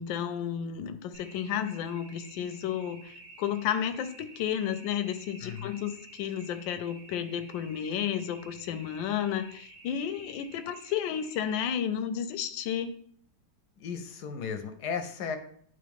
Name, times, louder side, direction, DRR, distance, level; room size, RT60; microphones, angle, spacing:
voice 1, 0.0-12.9, left 9 dB, 85° left, 9 dB, 1.3 m, -32 dB
sound 1, 1.1-11.7, right 2 dB, 55° right, 1.4 m, -51 dB
voice 2, 5.4-5.8 13.8-15.4, left 6 dB, 70° left, 8 dB, 1.1 m, -35 dB
9.5 x 3.6 x 3.5 m, 0.63 s
omnidirectional pair, 2.0 m